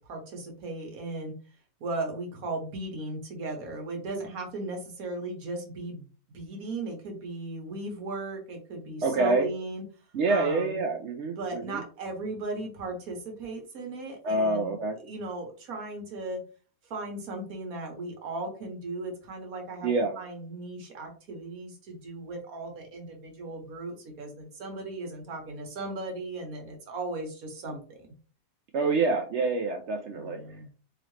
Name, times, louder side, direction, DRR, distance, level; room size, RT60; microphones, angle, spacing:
voice 1, 0.0-1.3 1.8-6.1 6.3-9.8 10.3-10.8 11.4-16.4 16.9-19.9 20.2-28.1 30.1-30.7, right 2 dB, 85° right, 2 dB, 1.5 m, -37 dB
voice 2, 9.0-9.5 10.1-11.8 14.2-15.0 19.8-20.1 28.7-30.4, right 3 dB, 65° right, 4 dB, 0.8 m, -26 dB
3.8 x 3.0 x 3.1 m, 0.39 s
omnidirectional pair, 1.5 m